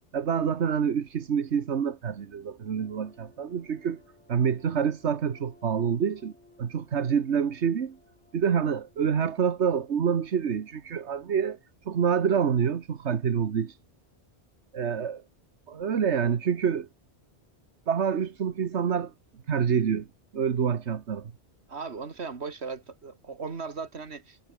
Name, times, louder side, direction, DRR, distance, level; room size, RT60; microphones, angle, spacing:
voice 1, 0.1-4.0 4.3-6.3 6.6-8.0 8.3-11.6 11.9-13.8 14.7-15.2 15.7-16.9 17.9-19.1 19.5-20.1 20.3-21.3, right 7 dB, 85° right, 1.5 m, -27 dB
sound 1, 2.8-12.6, left 2 dB, 90° left, 6.2 m, -60 dB
voice 2, 21.7-24.5, right 4 dB, 70° right, 2.2 m, -37 dB
omnidirectional pair, 1.1 m